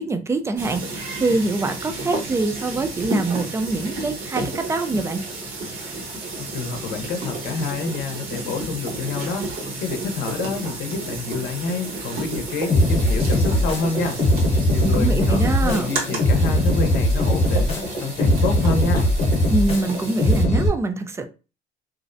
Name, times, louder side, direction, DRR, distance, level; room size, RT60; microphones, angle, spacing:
voice 1, 0.0-5.2 14.8-15.9 19.5-21.3, right 3 dB, 15° right, 0.3 m, -24 dB
sound 1, 0.6-20.4, right 2 dB, 70° right, 1.2 m, -31 dB
voice 2, 6.4-9.5 9.8-14.2 14.7-19.1, left 4 dB, 80° left, 0.6 m, -28 dB
sound 2, 12.7-20.7, left 1 dB, 40° left, 1.0 m, -20 dB
2.5 x 2.0 x 2.5 m
cardioid pair, 110°, 17 cm